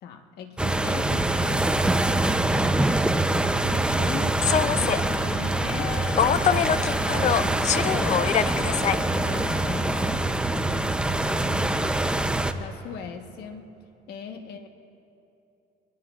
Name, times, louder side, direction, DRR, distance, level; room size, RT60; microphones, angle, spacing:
voice 1, 0.0-2.9 3.6-12.0 12.5-13.8 14.1-14.7, left 6 dB, 75° left, 5 dB, 1.2 m, -40 dB
sound 1, 0.6-12.5, right 2 dB, 5° right, 0.6 m, -24 dB
Human voice / Subway metro underground, 4.4-10.1, left 9 dB, 45° left, 0.5 m, -26 dB
27.0 x 21.0 x 2.5 m, 2.9 s
cardioid pair, 110°, 17 cm